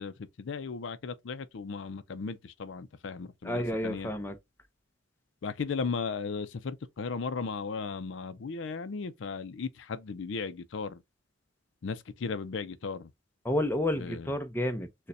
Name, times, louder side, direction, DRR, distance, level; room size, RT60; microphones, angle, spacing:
voice 1, 0.0-4.1 5.4-11.0 11.8-13.1 14.0-14.3, left 5 dB, 65° left, 0.4 m, -36 dB
voice 2, 3.4-4.3 13.4-15.1, left 1 dB, 10° left, 0.5 m, -30 dB
6.6 x 2.2 x 2.5 m
head